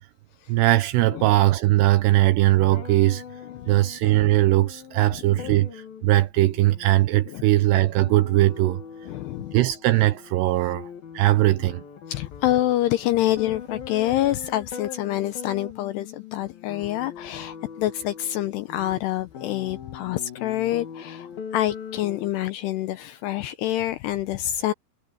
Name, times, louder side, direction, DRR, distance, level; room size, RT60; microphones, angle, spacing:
voice 1, 0.5-3.2 3.7-8.8 9.5-11.8, right 16 dB, 80° right, 2.5 m, -20 dB
sound 1, 2.5-22.3, left 7 dB, 55° left, 3.8 m, -41 dB
voice 2, 5.1-5.5 7.3-7.5 9.1-9.6 12.1-24.7, left 14 dB, 85° left, 2.5 m, -27 dB
omnidirectional pair, 5.5 m